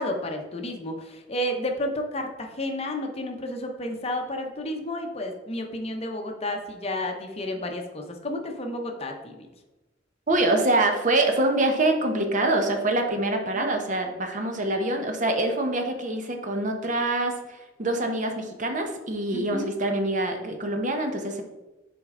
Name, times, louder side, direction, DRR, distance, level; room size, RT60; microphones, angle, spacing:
voice 1, 0.0-9.5 13.5-13.7 19.3-19.7, left 1 dB, 35° left, 3 dB, 0.8 m, -31 dB
voice 2, 10.3-21.4, right 2 dB, 40° right, 4 dB, 0.8 m, -25 dB
6.5 x 4.3 x 3.7 m, 1.1 s
head